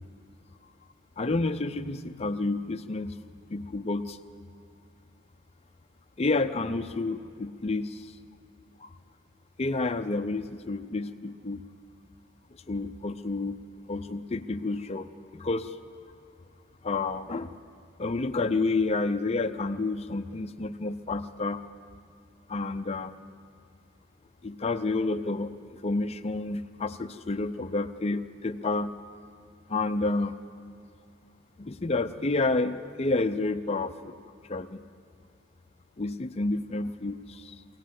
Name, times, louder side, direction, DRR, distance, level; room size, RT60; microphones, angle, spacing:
voice 1, 1.2-3.2 3.5-4.2 6.2-8.1 8.8-8.9 9.6-11.6 12.7-13.6 13.9-15.7 16.8-17.5 18.0-21.6 22.5-23.2 24.4-25.5 25.8-28.9 29.7-30.3 31.6-34.1 34.5-34.8 36.0-37.5, left 3 dB, 30° left, 9 dB, 0.5 m, -29 dB
23.5 x 17.5 x 7.6 m, 2.3 s
head